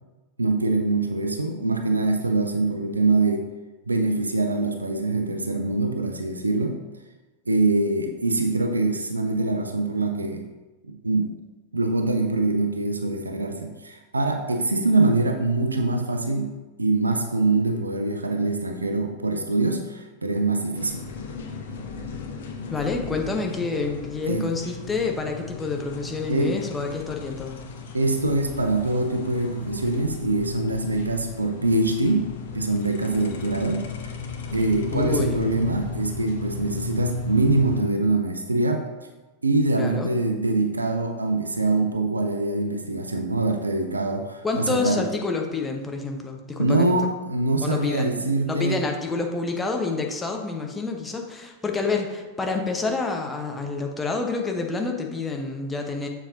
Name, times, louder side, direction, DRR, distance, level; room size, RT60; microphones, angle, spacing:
voice 1, 0.4-3.5 3.9-6.8 7.5-10.5 10.8-11.4 11.7-16.5 16.8-21.0 24.2-24.5 26.3-26.6 27.9-32.3 32.5-33.9 34.5-38.8 39.4-45.1 46.6-48.8, right 2 dB, 80° right, 5 dB, 0.6 m, -24 dB
sound 1, 20.7-37.8, left 5 dB, 60° left, 0.9 m, -36 dB
voice 2, 22.7-27.6 34.9-35.4 39.8-40.1 44.4-47.0 47.6-56.1, left 3 dB, 10° left, 2 dB, 1.0 m, -28 dB
7.1 x 6.9 x 2.7 m, 1.2 s
figure-of-eight pair, 90°, 0 cm